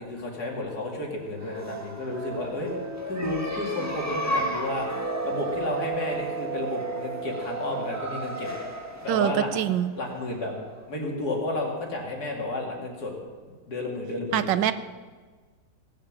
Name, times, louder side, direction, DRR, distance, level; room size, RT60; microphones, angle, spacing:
voice 1, 0.0-2.7 3.1-8.5 9.0-9.5 10.0-10.5 10.9-13.1 13.7-14.7, left 2 dB, 60° left, -1 dB, 3.1 m, -32 dB
sound 1, 1.3-10.8, right 2 dB, 10° right, 1.2 m, -33 dB
voice 2, 9.1-9.9 14.3-14.7, right 11 dB, 80° right, 13 dB, 1.3 m, -24 dB
18.0 x 8.9 x 7.4 m, 1.4 s
omnidirectional pair, 2.0 m